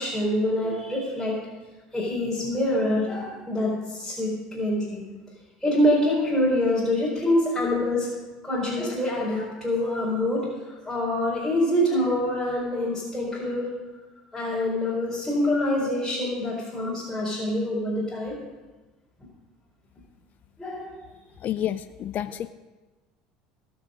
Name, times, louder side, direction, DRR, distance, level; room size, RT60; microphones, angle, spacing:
voice 1, 0.0-1.4 1.9-5.0 5.6-8.1 8.4-13.7 14.3-18.4 20.6-20.9, left 1 dB, 5° left, -7 dB, 4.4 m, -25 dB
voice 2, 21.4-22.5, left 11 dB, 45° left, 12 dB, 0.4 m, -29 dB
19.0 x 6.3 x 5.2 m, 1.2 s
hypercardioid pair, 75°, 4 cm